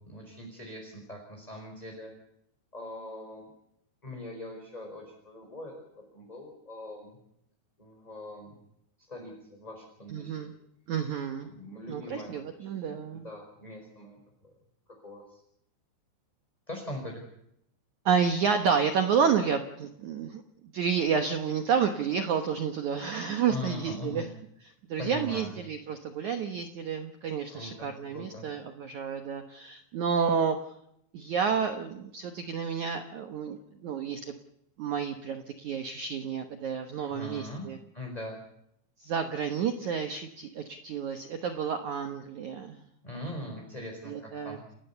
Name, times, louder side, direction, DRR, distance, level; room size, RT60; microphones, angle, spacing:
voice 1, 0.0-2.1 2.7-3.5 4.0-7.2 7.8-8.6 9.1-10.5 11.4-14.5 15.0-15.4 16.7-17.2 23.5-24.3 25.0-25.5 27.5-28.4 37.0-37.7 37.9-38.4 43.0-44.6, left 1 dB, 10° left, 1 dB, 4.6 m, -41 dB
voice 2, 10.1-10.5 10.9-11.5 11.9-13.3 18.1-20.4 20.7-24.3 24.9-30.6 31.1-33.6 33.8-34.3 34.8-37.8 39.0-42.8 44.1-44.6, right 6 dB, 75° right, 6 dB, 1.7 m, -30 dB
29.5 x 17.0 x 7.0 m, 0.77 s
omnidirectional pair, 5.2 m